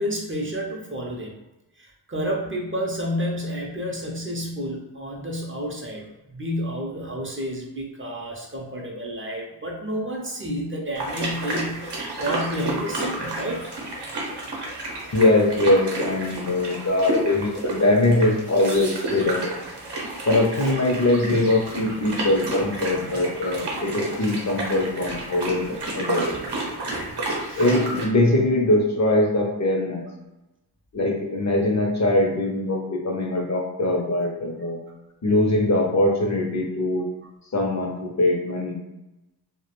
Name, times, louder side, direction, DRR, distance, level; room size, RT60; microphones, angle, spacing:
voice 1, 0.0-1.3 1.8-6.0 6.3-13.7 26.9-27.7, equal, 30° right, -1 dB, 0.4 m, -30 dB
sound 1, 11.0-28.1, right 2 dB, 85° right, 0.7 m, -31 dB
voice 2, 15.1-19.5 20.3-26.3 27.6-30.1 30.9-34.8 35.2-37.1 37.5-38.8, left 2 dB, 45° left, 0 dB, 0.5 m, -22 dB
2.2 x 2.1 x 2.9 m, 0.98 s
wide cardioid pair, 95°, 40 cm